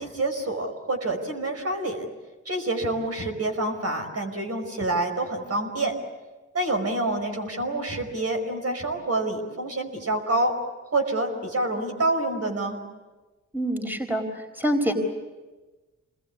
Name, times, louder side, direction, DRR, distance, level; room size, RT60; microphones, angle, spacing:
voice 1, 0.0-2.1 2.5-5.9 6.5-10.5 10.9-12.8, right 2 dB, 50° right, 4 dB, 5.2 m, -27 dB
voice 2, 13.5-14.9, equal, 5° right, 5 dB, 4.4 m, -26 dB
27.5 x 20.5 x 8.6 m, 1.2 s
cardioid pair, 65°, 32 cm